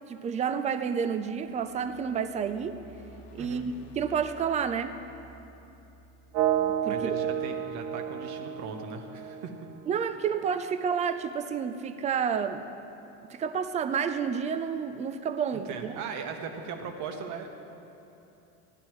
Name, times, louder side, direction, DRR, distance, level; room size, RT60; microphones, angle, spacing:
voice 1, 0.1-2.8 3.3-4.9 6.8-7.2 9.9-12.7 13.3-15.9, right 7 dB, 20° right, 10 dB, 0.3 m, -30 dB
sound 1, 1.3-7.5, equal, 70° left, 1.3 m, -53 dB
sound 2, 6.3-10.3, right 10 dB, 85° right, 0.6 m, -31 dB
voice 2, 6.9-9.5 15.5-17.5, right 5 dB, 55° right, 5 dB, 1.1 m, -38 dB
14.5 x 11.5 x 3.1 m, 3.0 s
supercardioid pair, 135°, 35 cm